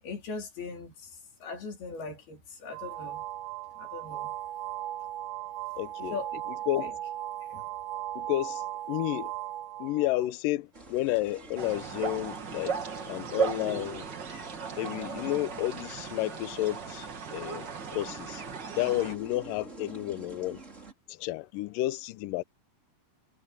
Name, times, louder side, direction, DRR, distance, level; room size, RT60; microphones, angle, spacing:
voice 1, 0.0-3.2 3.8-4.4 6.1-6.4 6.8-6.9 7.4-7.7, left 4 dB, 60° left, 6.0 m, -40 dB
sound 1, 2.7-10.3, right 13 dB, 90° right, 3.4 m, -37 dB
voice 2, 5.8-6.2 6.7-7.0 8.2-9.3 9.8-14.1 14.8-18.4 18.8-20.6 21.1-22.4, left 16 dB, 90° left, 1.9 m, -31 dB
sound 2, 10.7-20.9, right 2 dB, 15° right, 5.0 m, -49 dB
sound 3, 11.6-19.2, right 6 dB, 65° right, 1.0 m, -36 dB
omnidirectional pair, 4.9 m